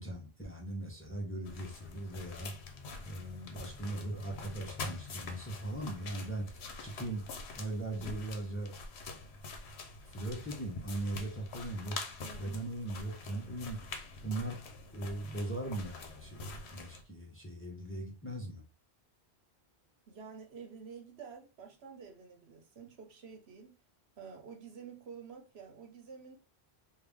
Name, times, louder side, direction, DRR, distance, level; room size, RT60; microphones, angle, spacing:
voice 1, 0.0-2.5 3.0-7.2 7.5-8.7 10.1-12.0 12.4-13.8 14.2-18.6, right 2 dB, 15° left, 0.9 m, -39 dB
sound 1, 1.4-17.0, left 3 dB, 80° left, 1.0 m, -45 dB
voice 2, 12.2-12.7 20.1-23.8 24.2-26.4, right 6 dB, 75° right, 1.1 m, -50 dB
3.4 x 2.6 x 3.4 m
omnidirectional pair, 1.1 m